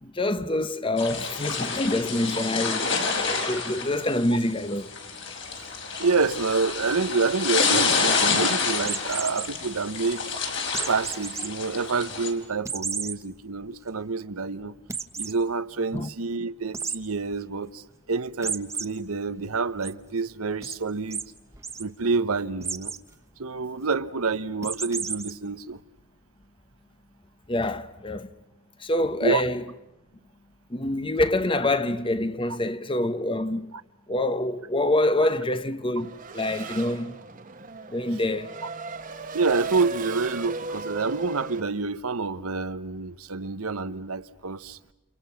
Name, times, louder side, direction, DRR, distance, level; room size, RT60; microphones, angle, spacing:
voice 1, 0.0-3.0 3.2-4.9 15.9-16.1 27.5-28.3 28.8-29.6 30.7-33.7 34.1-37.2 37.9-38.5, left 1 dB, 25° left, 0.9 m, -26 dB
sound 1, 1.0-12.3, left 4 dB, 55° left, 4.7 m, -28 dB
voice 2, 6.0-10.2 10.8-14.7 15.2-17.8 18.1-21.2 21.8-22.9 23.4-25.8 29.2-29.4 39.3-44.8, right 4 dB, 85° right, 1.0 m, -28 dB
sound 2, 8.8-9.5 10.7-11.5 11.9-12.0 12.6-13.1 13.6-13.7 14.0-14.1 14.9-15.3 16.7-17.0 18.4-18.8 19.3-19.9 20.6-20.8 21.1-21.2 21.5-21.8 22.6-23.0 24.6-25.3, right 5 dB, 15° right, 1.0 m, -32 dB
Race car auto racing / Accelerating revving vroom, 36.0-41.6, right 3 dB, 40° right, 1.2 m, -37 dB
29.5 x 29.0 x 5.8 m
head